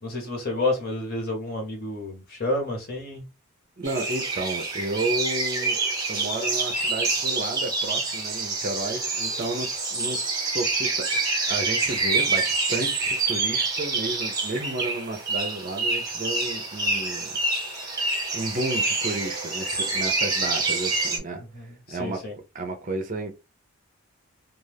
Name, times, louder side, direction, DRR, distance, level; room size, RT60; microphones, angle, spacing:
voice 1, 0.0-3.2 21.5-22.3, left 2 dB, 45° left, 1.1 m, -30 dB
sound 1, 3.8-21.2, right 3 dB, 20° right, 0.9 m, -27 dB
voice 2, 3.8-5.8 6.1-22.2 22.5-23.3, right 2 dB, 35° right, 0.5 m, -32 dB
2.4 x 2.4 x 3.3 m
head